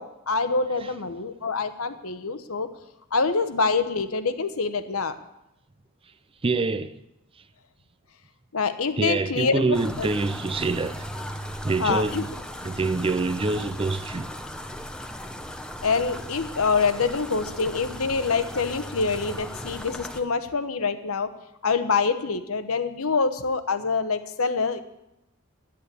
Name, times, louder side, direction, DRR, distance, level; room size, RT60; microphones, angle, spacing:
voice 1, 0.0-2.7 3.1-5.1 8.5-10.1 11.8-12.2 15.8-21.3 21.6-24.8, left 4 dB, 75° left, 1.0 m, -25 dB
voice 2, 6.4-6.9 9.0-11.1 11.6-12.3 12.6-14.3, right 3 dB, 25° right, 0.5 m, -25 dB
sound 1, 9.7-20.2, equal, 5° left, 0.8 m, -37 dB
11.0 x 8.6 x 8.3 m
head